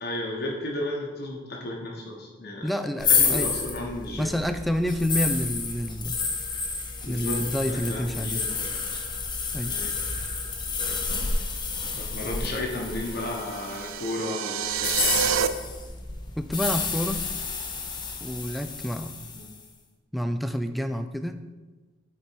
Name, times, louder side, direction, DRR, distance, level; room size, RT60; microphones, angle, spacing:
voice 1, 0.0-4.3 7.0-7.4 7.7-9.0 9.7-9.9 11.9-15.4 19.3-19.5, left 1 dB, 55° left, -1 dB, 1.1 m, -34 dB
voice 2, 2.6-3.5 4.2-6.2 7.1-8.4 9.5-9.7 16.4-17.3 18.2-19.1 20.1-21.4, equal, ahead, 8 dB, 0.3 m, -28 dB
sound 1, 3.0-14.0 14.7-19.5, left 5 dB, 25° left, 0.7 m, -30 dB
sound 2, 12.9-15.5, right 9 dB, 85° right, 0.4 m, -28 dB
8.4 x 4.3 x 4.6 m, 1.3 s
head